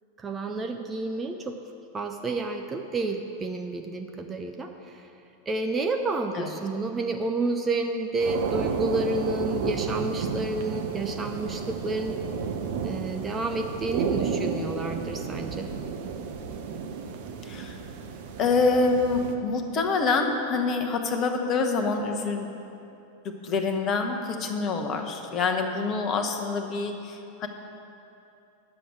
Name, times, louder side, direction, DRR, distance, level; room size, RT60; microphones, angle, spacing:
voice 1, 0.2-1.6 1.9-5.0 5.5-12.2 12.8-15.7, right 2 dB, 20° right, 4 dB, 0.5 m, -30 dB
sound 1, 8.2-19.3, right 5 dB, 50° right, 0.7 m, -32 dB
voice 2, 17.4-17.8 18.4-22.5 23.4-27.5, left 4 dB, 30° left, 4 dB, 1.0 m, -26 dB
10.0 x 6.9 x 6.3 m, 2.8 s
figure-of-eight pair, 90°, 0 cm